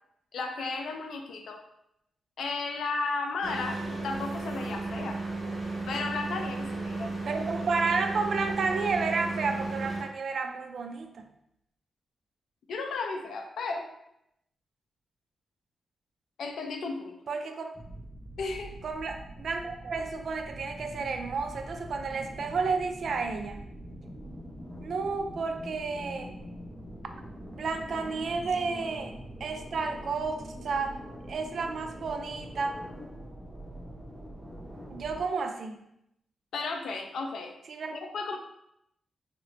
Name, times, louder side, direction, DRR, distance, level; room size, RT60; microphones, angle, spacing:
voice 1, 0.3-1.6 2.4-5.2 5.9-7.4 12.7-13.9 16.4-17.1 18.4-18.7 36.5-37.5 37.9-38.4, left 3 dB, 80° left, 4 dB, 0.4 m, -34 dB
sound 1, 3.4-10.0, right 3 dB, 30° right, 1.1 m, -34 dB
voice 2, 7.3-11.3 17.3-17.8 18.8-23.7 24.8-26.3 27.5-29.1 29.4-30.9 31.3-32.8 34.9-35.8 37.7-38.0, right 4 dB, 60° right, 5 dB, 0.4 m, -31 dB
sound 2, 17.7-35.2, equal, 10° right, 0.5 m, -44 dB
4.2 x 2.0 x 2.8 m, 0.80 s
wide cardioid pair, 135°, 0 cm